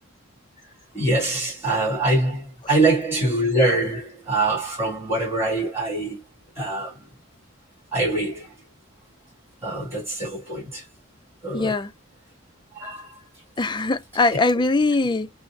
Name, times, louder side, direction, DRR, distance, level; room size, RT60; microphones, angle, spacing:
voice 1, 0.9-6.2 6.6-6.9 7.9-8.5 9.6-10.8 11.4-11.7 12.7-13.2, right 2 dB, 15° right, 1.6 m, -24 dB
voice 2, 11.5-11.9 13.6-15.3, left 3 dB, 25° left, 0.4 m, -21 dB
5.4 x 2.0 x 3.2 m
head